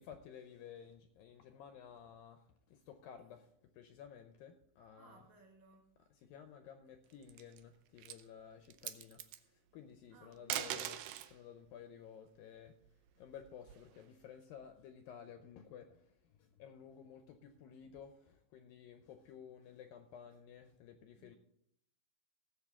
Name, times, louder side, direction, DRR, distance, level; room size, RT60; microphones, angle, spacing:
voice 1, 0.0-5.3 6.1-11.0 11.3-21.4, left 8 dB, 80° left, 2.1 m, -54 dB
voice 2, 5.0-5.9 10.1-10.8 21.2-21.4, right 4 dB, 60° right, 2.5 m, -62 dB
sound 1, 7.1-7.6 8.0-8.2 8.7-9.4 10.3-11.4 12.8-14.0, right 12 dB, 85° right, 2.0 m, -42 dB
18.5 x 7.4 x 3.6 m
omnidirectional pair, 4.7 m